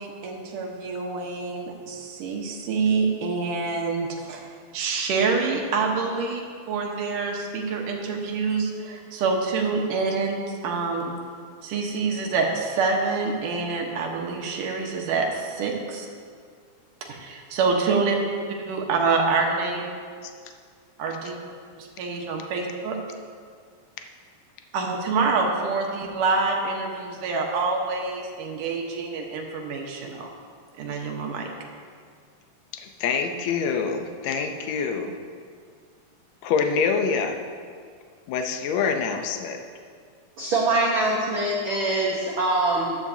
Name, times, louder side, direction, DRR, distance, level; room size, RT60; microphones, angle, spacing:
voice 1, 0.0-6.4 6.7-11.1 11.6-16.1 17.1-18.2 18.7-19.9 21.0-21.3 21.8-22.9 24.7-30.3 30.8-31.5, right 4 dB, 70° right, 1 dB, 2.6 m, -26 dB
voice 2, 32.7-35.1 36.4-37.4 38.3-39.6, left 5 dB, 80° left, 5 dB, 1.5 m, -25 dB
voice 3, 40.4-43.0, right 2 dB, 90° right, -3 dB, 1.1 m, -23 dB
14.0 x 11.0 x 2.8 m, 2.1 s
omnidirectional pair, 4.0 m